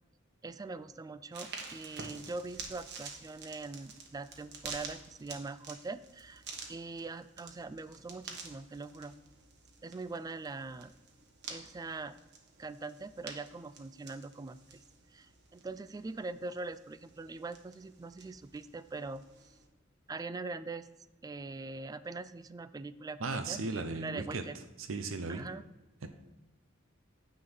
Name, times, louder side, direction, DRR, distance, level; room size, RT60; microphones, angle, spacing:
voice 1, 0.4-6.4 6.7-9.1 9.8-10.9 11.5-12.2 12.6-14.8 15.1-19.2 20.1-20.9 21.2-24.6 25.3-25.6, right 3 dB, 20° right, 14 dB, 0.3 m, -42 dB
sound 1, 1.3-19.7, right 4 dB, 60° right, 1.3 m, -49 dB
voice 2, 23.2-24.4 24.8-25.5 26.0-26.1, right 3 dB, 90° right, 7 dB, 0.7 m, -36 dB
9.6 x 3.9 x 6.9 m, 1.1 s
head